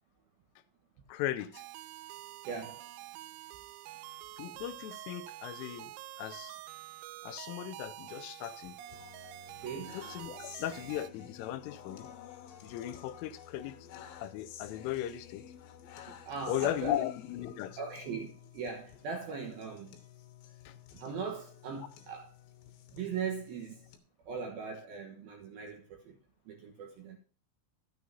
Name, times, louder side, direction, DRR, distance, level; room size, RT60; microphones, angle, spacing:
voice 1, 1.1-1.6 4.4-5.9 6.2-6.6 7.2-8.8 9.9-12.1 12.6-13.7 14.2-15.5 16.5-17.8 20.7-20.8, left 12 dB, 85° left, 3.2 m, -37 dB
sound 1, 1.5-11.1, right 16 dB, 90° right, 2.5 m, -47 dB
voice 2, 2.5-2.9 9.6-10.0 16.1-17.0 17.8-20.0 20.9-22.3 22.9-23.8 24.3-26.1 26.5-27.2, right 5 dB, 70° right, 2.4 m, -40 dB
sound 2, 8.0-24.0, left 9 dB, 70° left, 3.0 m, -52 dB
Telephone, 8.7-9.4 9.8-10.5 10.9-11.6 11.9-14.0, left 7 dB, 5° left, 4.3 m, -59 dB
13.5 x 9.3 x 2.8 m
omnidirectional pair, 5.7 m